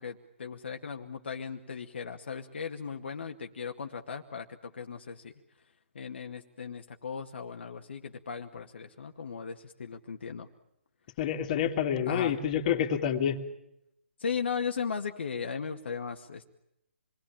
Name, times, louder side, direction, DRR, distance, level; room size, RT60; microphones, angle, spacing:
voice 1, 0.0-5.3 5.9-10.5 12.1-12.4 14.2-16.5, left 6 dB, 60° left, 4 dB, 2.1 m, -37 dB
voice 2, 11.2-13.4, left 9 dB, 40° left, 7 dB, 3.0 m, -28 dB
28.5 x 21.0 x 8.9 m, 0.84 s
figure-of-eight pair, 135°, 7 cm